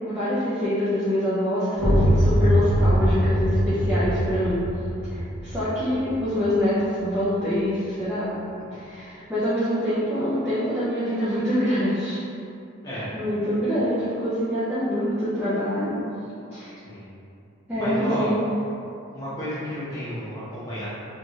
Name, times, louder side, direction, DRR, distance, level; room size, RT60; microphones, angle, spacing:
voice 1, 0.1-4.6 5.1-8.4 8.7-12.2 12.9-15.9 16.5-16.8 17.7-18.4, equal, 10° right, -14 dB, 0.5 m, -25 dB
sound 1, 1.8-7.3, equal, 60° right, 0.9 m, -23 dB
voice 2, 12.8-13.2 16.8-17.1 17.8-18.3 19.1-20.9, equal, 15° left, -11 dB, 0.9 m, -32 dB
3.3 x 2.7 x 2.9 m, 2.6 s
head